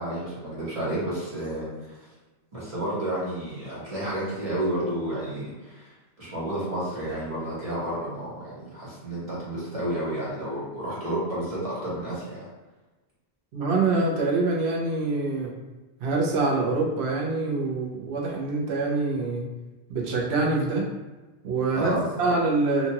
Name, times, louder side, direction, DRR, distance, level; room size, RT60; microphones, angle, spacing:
voice 1, 0.0-2.1 2.5-5.9 6.2-12.5 21.7-22.4, right 1 dB, 35° right, -8 dB, 1.1 m, -31 dB
voice 2, 13.5-15.5 16.0-19.4 19.9-20.8 21.4-22.9, right 3 dB, 70° right, -2 dB, 0.9 m, -25 dB
2.8 x 2.4 x 2.8 m, 1.2 s
omnidirectional pair, 1.2 m